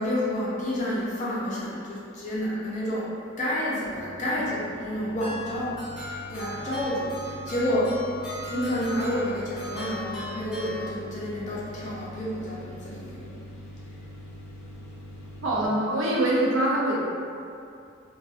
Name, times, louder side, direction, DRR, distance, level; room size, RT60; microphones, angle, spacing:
voice 1, 0.0-3.1 3.4-8.0 8.5-13.4, equal, 35° left, -7 dB, 0.5 m, -29 dB
sound 1, 3.8-15.7, equal, 90° left, 0.5 m, -43 dB
sound 2, 5.2-11.4, left 1 dB, 5° right, 0.7 m, -38 dB
voice 2, 15.4-17.0, right 1 dB, 65° right, -4 dB, 0.5 m, -24 dB
2.4 x 2.3 x 2.4 m, 2.4 s
head